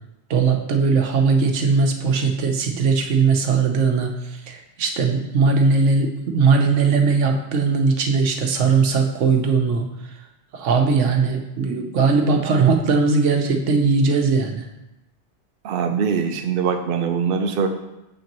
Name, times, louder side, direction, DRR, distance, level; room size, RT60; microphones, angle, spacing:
voice 1, 0.3-4.1 4.5-9.9 10.5-14.6, right 4 dB, 75° right, 4 dB, 1.1 m, -19 dB
voice 2, 15.6-17.7, right 6 dB, 60° right, 5 dB, 0.7 m, -22 dB
7.4 x 5.9 x 3.0 m, 0.93 s
omnidirectional pair, 1.2 m